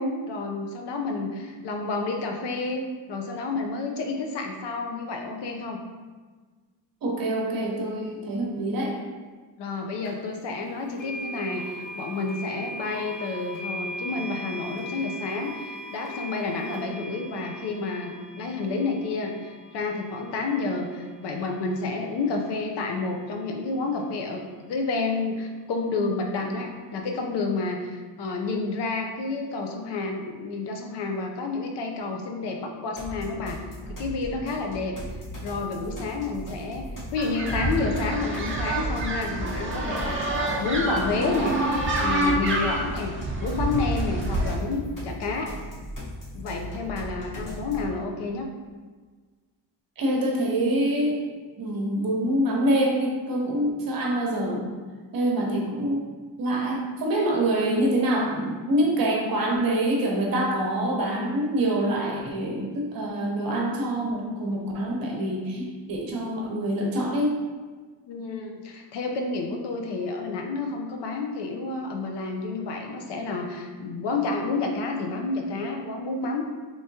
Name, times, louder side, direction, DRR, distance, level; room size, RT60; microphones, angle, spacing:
voice 1, 0.0-5.8 9.6-33.6 33.9-35.0 35.4-40.2 40.6-41.6 42.0-45.5 46.3-48.5 68.1-76.4, left 3 dB, 65° left, 2 dB, 0.6 m, -30 dB
voice 2, 7.0-9.0 50.0-51.2 51.6-54.7 55.1-56.1 56.4-67.4, right 1 dB, 50° right, -1 dB, 0.9 m, -25 dB
sound 1, 10.0-10.1 11.0-22.0, equal, 90° left, 1.0 m, -39 dB
sound 2, 33.0-48.0, equal, 45° left, 1.1 m, -38 dB
sound 3, 37.2-44.6, right 1 dB, 30° right, 0.5 m, -27 dB
3.5 x 3.1 x 2.7 m, 1.4 s
cardioid pair, 125°, 44 cm